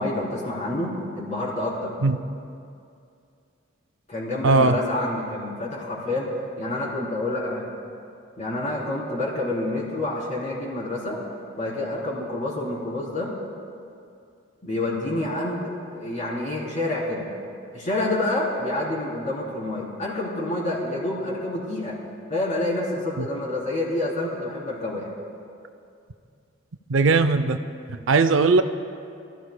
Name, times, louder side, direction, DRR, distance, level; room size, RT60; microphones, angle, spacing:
voice 1, 0.0-1.9 4.1-6.3 6.6-7.7 8.4-11.2 11.6-13.3 14.6-17.3 17.7-22.0 22.3-25.1, left 2 dB, 35° left, -5 dB, 3.6 m, -28 dB
voice 2, 4.4-4.8 23.2-23.3 26.9-27.6 28.1-28.6, right 3 dB, 70° right, 10 dB, 0.5 m, -18 dB
27.0 x 14.5 x 2.2 m, 2.5 s
head